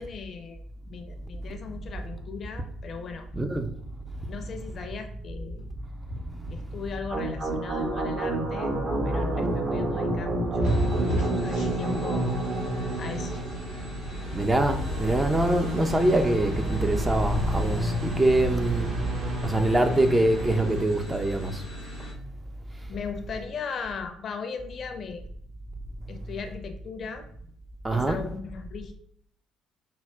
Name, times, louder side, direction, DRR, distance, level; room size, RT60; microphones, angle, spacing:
voice 1, 0.0-3.3 4.3-5.7 6.5-8.7 9.0-11.0 11.2-12.4 13.0-13.4 22.9-25.2 26.1-27.2 27.9-28.9, left 5 dB, 50° left, 0.5 m, -38 dB
sound 1, 1.7-13.8, right 1 dB, 85° right, 1.3 m, -36 dB
voice 2, 3.3-3.7 9.0-9.6 14.3-18.9 19.4-21.6 27.8-28.2, right 1 dB, 20° right, 0.4 m, -24 dB
sound 2, 7.1-20.8, right 1 dB, 50° right, 1.0 m, -30 dB
sound 3, 10.6-22.1, equal, 70° right, 1.1 m, -42 dB
5.4 x 2.1 x 2.3 m
hypercardioid pair, 50°, 0 cm